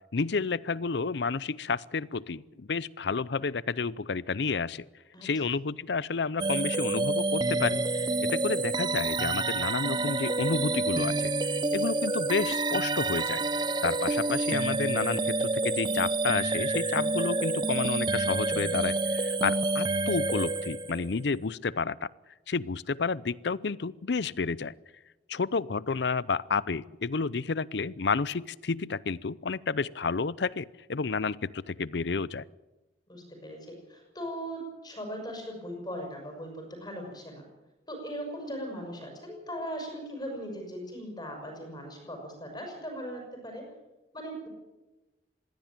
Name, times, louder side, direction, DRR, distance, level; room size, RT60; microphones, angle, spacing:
voice 1, 0.1-4.9 5.2-7.8 8.2-11.3 11.7-13.4 13.8-22.1 22.5-24.7 25.3-32.4, left 4 dB, 65° left, 20 dB, 0.6 m, -30 dB
sound 1, 6.4-21.2, right 2 dB, 25° right, 0.7 m, -28 dB
voice 2, 33.1-37.4 37.9-43.7 44.1-44.5, equal, 25° left, 2 dB, 6.1 m, -39 dB
21.0 x 16.0 x 8.9 m, 1.1 s
head